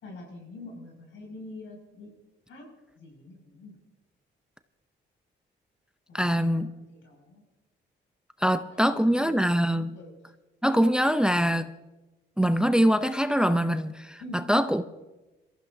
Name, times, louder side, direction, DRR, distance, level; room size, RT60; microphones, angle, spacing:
voice 1, 0.0-2.1 2.5-2.6 2.9-3.7 6.3-6.6 6.9-7.4 8.4-9.4 9.9-10.2 14.2-14.4, left 2 dB, 80° left, 1 dB, 6.2 m, -45 dB
voice 2, 6.1-6.7 8.4-9.9 10.6-11.7 12.4-14.2 14.5-14.8, equal, 5° right, 10 dB, 0.6 m, -23 dB
23.5 x 14.5 x 2.7 m, 1.1 s
cardioid pair, 90°, 20 cm